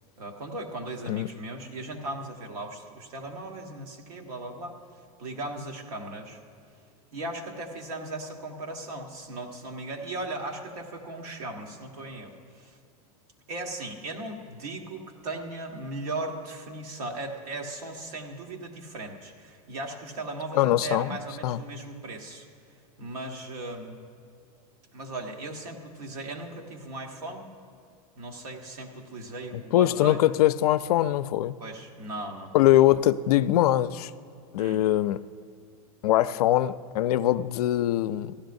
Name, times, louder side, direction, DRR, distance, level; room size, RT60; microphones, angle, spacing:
voice 1, 0.2-4.8 5.2-6.4 7.1-12.8 13.5-22.5 23.0-24.0 24.9-27.4 28.2-30.2 31.6-32.5 34.6-34.8, right 2 dB, 80° right, 1.6 m, -37 dB
voice 2, 20.5-21.2 21.4-21.6 29.5-31.5 32.5-34.1 34.5-35.2 36.0-38.3, left 13 dB, 80° left, 0.4 m, -22 dB
16.0 x 12.0 x 2.6 m
supercardioid pair, 140°, 19 cm